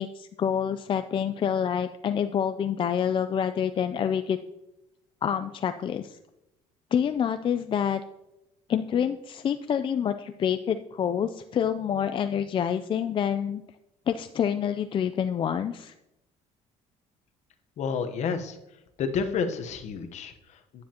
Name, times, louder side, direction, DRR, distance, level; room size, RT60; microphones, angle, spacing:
voice 1, 0.0-4.4 5.2-6.2 6.9-8.0 8.7-13.6 14.1-15.9, left 8 dB, 40° left, 9 dB, 0.4 m, -27 dB
voice 2, 17.8-18.6 19.0-20.8, left 5 dB, 60° left, 8 dB, 1.0 m, -30 dB
10.0 x 9.5 x 2.9 m, 0.91 s
cardioid pair, 110°, 13 cm